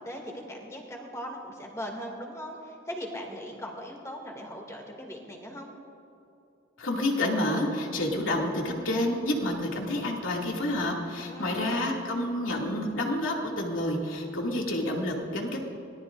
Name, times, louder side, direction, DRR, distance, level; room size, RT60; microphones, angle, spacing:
voice 1, 0.0-5.7 11.2-11.9, equal, 15° left, 1 dB, 2.4 m, -39 dB
voice 2, 6.8-15.6, left 1 dB, 85° left, -1 dB, 2.5 m, -29 dB
24.5 x 18.5 x 2.6 m, 2.7 s
head